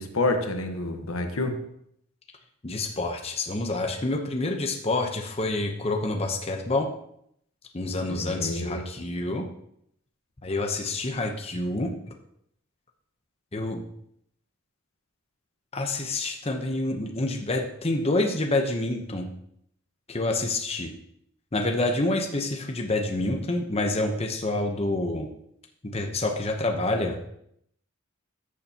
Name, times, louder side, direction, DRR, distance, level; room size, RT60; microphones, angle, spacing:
voice 1, 0.0-1.6 8.1-8.8, left 2 dB, 80° left, 5 dB, 1.2 m, -28 dB
voice 2, 2.6-6.9 7.7-9.5 10.4-11.9 13.5-13.8 15.7-19.3 20.1-20.9 21.5-25.3 25.8-27.3, left 2 dB, 30° left, 2 dB, 0.8 m, -27 dB
13.5 x 7.0 x 2.9 m, 0.72 s
head